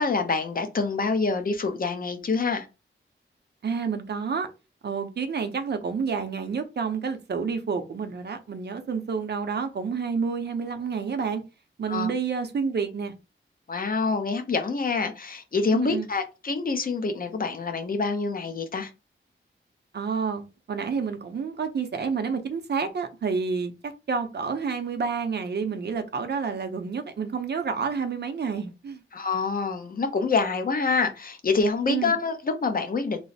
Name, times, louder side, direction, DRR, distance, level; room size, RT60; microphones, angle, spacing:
voice 1, 0.0-2.7 11.9-12.1 13.7-18.9 29.1-33.2, left 4 dB, 45° left, 0.6 m, -26 dB
voice 2, 3.6-4.5 4.8-11.4 11.8-13.1 15.7-16.1 19.9-29.0 31.9-32.1, right 5 dB, 55° right, 0.6 m, -29 dB
3.1 x 2.0 x 4.0 m
wide cardioid pair, 130°, 21 cm